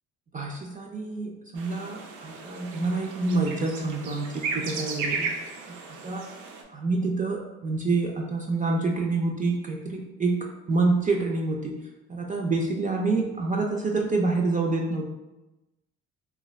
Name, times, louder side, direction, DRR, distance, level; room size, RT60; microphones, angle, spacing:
voice 1, 0.3-5.3 5.7-6.3 6.7-11.7 12.1-15.1, right 3 dB, 25° right, 0 dB, 0.4 m, -27 dB
sound 1, 1.6-6.6, right 4 dB, 80° right, 0.5 m, -35 dB
2.5 x 2.4 x 3.1 m, 1.0 s
cardioid pair, 90°, 30 cm